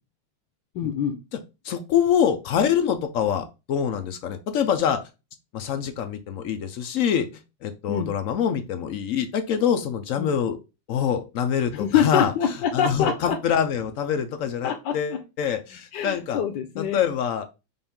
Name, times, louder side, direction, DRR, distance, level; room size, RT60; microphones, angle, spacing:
voice 1, 0.7-1.2 7.9-8.1 10.2-10.3 11.7-13.4 14.6-15.2 15.9-17.0, left 8 dB, 90° left, 3 dB, 1.3 m, -25 dB
voice 2, 1.6-5.0 5.5-7.3 7.6-10.6 10.9-12.3 12.7-16.4 16.8-17.5, left 8 dB, 70° left, 7 dB, 0.8 m, -25 dB
5.4 x 2.5 x 3.5 m, 0.27 s
omnidirectional pair, 1.8 m